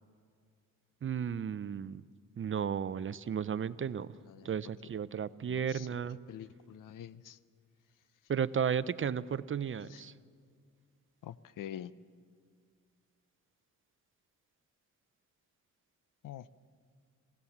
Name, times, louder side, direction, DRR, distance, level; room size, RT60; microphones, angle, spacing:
voice 1, 1.0-2.0 2.4-4.1 4.4-6.2 8.3-10.1, right 7 dB, 40° right, 16 dB, 0.6 m, -34 dB
voice 2, 4.2-4.5 5.5-5.9 6.3-7.4 9.9-10.0 11.2-11.9 16.2-16.5, left 10 dB, 70° left, 18 dB, 0.7 m, -46 dB
27.0 x 16.0 x 7.2 m, 2.1 s
cardioid pair, 90°, 33 cm